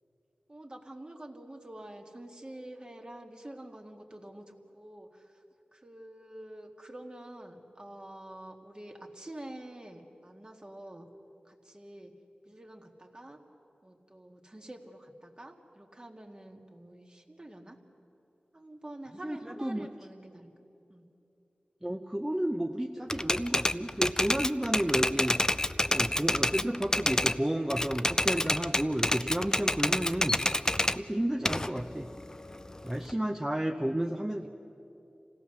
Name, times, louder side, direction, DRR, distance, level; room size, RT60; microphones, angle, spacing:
voice 1, 0.5-5.4 5.7-11.1 11.4-12.1 12.5-13.4 13.8-17.8 18.5-20.5 20.9-21.1, right 1 dB, 30° right, 2 dB, 1.9 m, -47 dB
voice 2, 19.2-19.9 21.8-25.4 25.9-30.4 31.0-32.1 32.8-34.5, right 1 dB, 15° right, 3 dB, 0.8 m, -31 dB
Typewriter, 23.1-27.4 27.7-31.0 31.5-33.1, left 1 dB, 20° left, 0.5 m, -28 dB
27.0 x 17.0 x 7.0 m, 2.9 s
wide cardioid pair, 65°, 3 cm